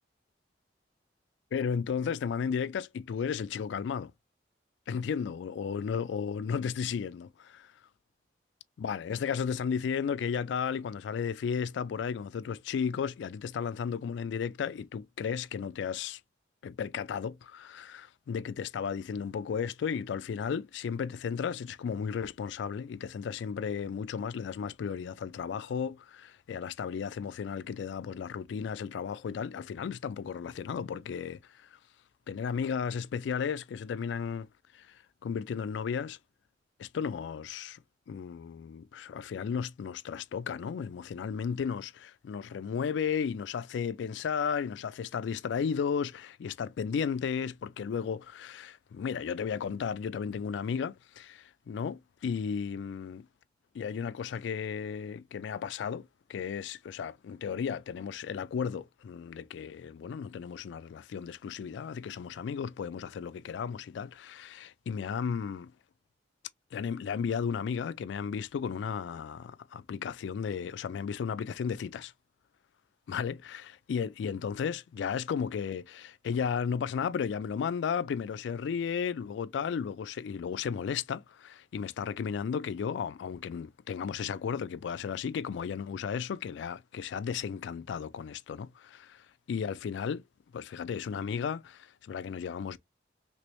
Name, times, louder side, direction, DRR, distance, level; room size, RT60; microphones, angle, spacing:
voice 1, 1.5-4.1 4.9-7.6 8.8-16.2 16.6-31.7 32.3-34.5 34.7-36.2 36.8-37.8 38.1-53.3 53.7-65.7 66.7-72.1 73.1-89.2 89.5-90.2 90.5-92.8, left 6 dB, 80° left, 0.3 m, -34 dB
3.1 x 3.0 x 3.0 m
head